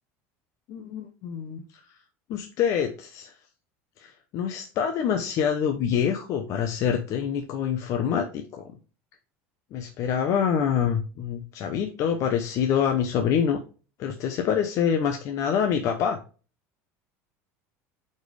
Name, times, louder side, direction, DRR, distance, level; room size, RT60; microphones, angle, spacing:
voice 1, 0.7-1.6 2.3-3.3 4.0-8.7 9.7-13.6 14.0-16.2, left 8 dB, 50° left, 5 dB, 0.9 m, -26 dB
8.2 x 4.5 x 3.3 m, 0.35 s
cardioid pair, 145°, 7 cm